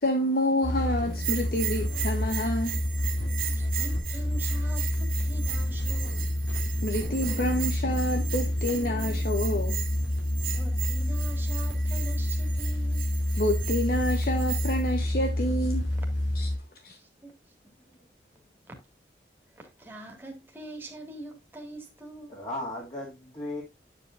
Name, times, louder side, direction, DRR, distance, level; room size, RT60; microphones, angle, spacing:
voice 1, 0.0-2.8 6.8-9.8 13.4-15.9 16.3-16.5 16.8-17.0, left 1 dB, 55° left, 1.0 m, -28 dB
sound 1, 0.6-16.6, left 1 dB, 85° left, 3.4 m, -28 dB
Bell, 1.1-14.9, right 11 dB, 50° right, 1.6 m, -37 dB
voice 2, 3.4-6.2 10.5-13.1 17.0-17.3 18.7-18.8 19.5-22.4, right 2 dB, 10° right, 2.0 m, -44 dB
voice 3, 17.6-18.1 22.3-23.6, left 1 dB, 30° left, 2.3 m, -37 dB
8.8 x 7.4 x 2.5 m
head